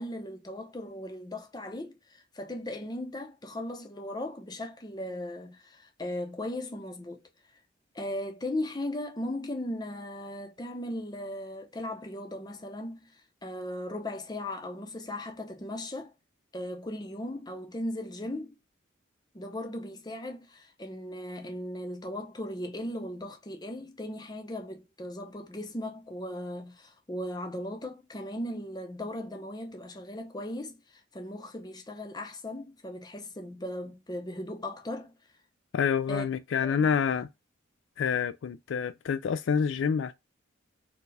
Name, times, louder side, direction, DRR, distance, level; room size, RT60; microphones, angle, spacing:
voice 1, 0.0-7.2 7.9-16.1 16.5-18.5 19.3-35.1 36.1-36.3 36.6-36.9, left 1 dB, 20° left, 0.7 m, -37 dB
voice 2, 35.7-37.3 38.0-40.1, left 7 dB, 65° left, 0.3 m, -27 dB
4.5 x 2.3 x 3.3 m
head